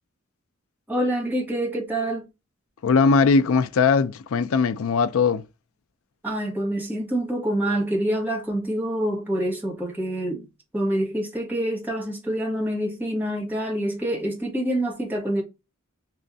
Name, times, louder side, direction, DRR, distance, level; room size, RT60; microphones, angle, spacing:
voice 1, 0.9-2.3 6.2-10.5 10.7-15.4, right 1 dB, 10° right, 1.4 m, -26 dB
voice 2, 2.8-5.4, left 4 dB, 70° left, 0.4 m, -20 dB
3.4 x 3.1 x 2.6 m
head